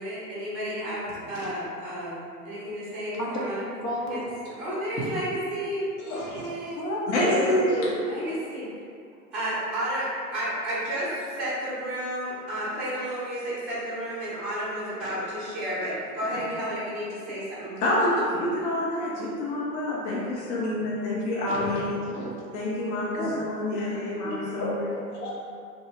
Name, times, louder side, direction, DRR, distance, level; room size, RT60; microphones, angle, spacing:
voice 1, 0.0-3.7 4.1-4.2 4.5-6.8 8.0-8.7 9.3-18.0, equal, ahead, -12 dB, 0.4 m, -32 dB
voice 2, 3.8-4.2 5.0-5.1 6.0-6.5 6.7-8.4 15.0-15.2 21.5-22.5 23.1-23.3 23.6-23.7 24.2-25.4, left 1 dB, 70° left, -4 dB, 0.9 m, -32 dB
voice 3, 7.1-7.9 17.8-22.0 22.5-23.2 23.5-24.9, left 1 dB, 50° left, -6 dB, 0.6 m, -27 dB
2.9 x 2.2 x 3.2 m, 2.3 s
hypercardioid pair, 115°, 47 cm